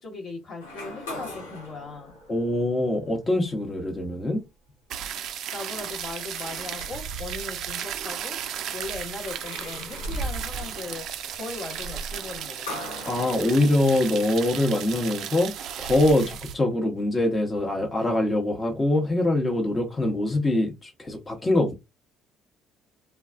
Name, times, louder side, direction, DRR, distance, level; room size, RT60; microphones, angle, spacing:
voice 1, 0.0-2.1 5.5-8.4 8.7-12.8, left 3 dB, 55° left, 1.0 m, -38 dB
sound 1, 0.6-3.1 3.7-3.8 6.4-7.4 8.8-14.6, equal, 85° left, 0.7 m, -39 dB
voice 2, 2.3-4.4 13.0-15.5 15.8-21.7, left 1 dB, 25° left, 0.8 m, -24 dB
sound 2, 4.9-16.5, right 9 dB, 60° right, 0.4 m, -35 dB
2.2 x 2.2 x 2.5 m
hypercardioid pair, 55°, 0 cm